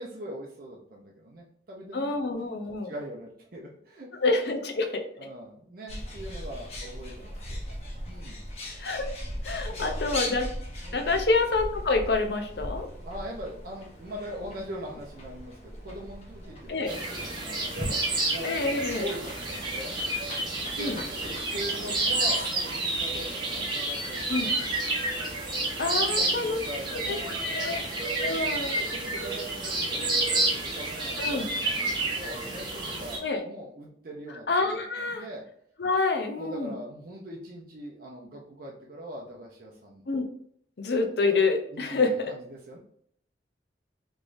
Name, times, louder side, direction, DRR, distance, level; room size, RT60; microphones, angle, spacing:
voice 1, 0.0-2.0 2.8-4.1 5.2-7.6 8.0-8.4 9.5-10.0 10.8-11.1 13.1-18.6 19.0-20.0 20.8-24.2 25.8-27.9 28.7-31.2 31.5-35.4 36.4-40.0 41.7-42.8, equal, 50° right, -2 dB, 0.6 m, -41 dB
voice 2, 1.9-2.9 4.2-5.0 8.8-9.1 9.4-10.5 10.9-12.9 16.7-16.9 18.4-19.1 20.8-21.0 24.3-24.5 25.8-26.6 27.1-27.8 28.2-28.8 31.2-31.5 33.2-33.4 34.5-35.3 35.8-36.7 40.1-40.2 40.8-42.1, left 3 dB, 60° left, 5 dB, 0.6 m, -27 dB
Bird, 5.9-22.6, left 1 dB, 35° left, 0.9 m, -39 dB
sound 1, 16.9-33.2, right 2 dB, 25° right, 1.0 m, -30 dB
3.5 x 3.1 x 2.6 m, 0.66 s
head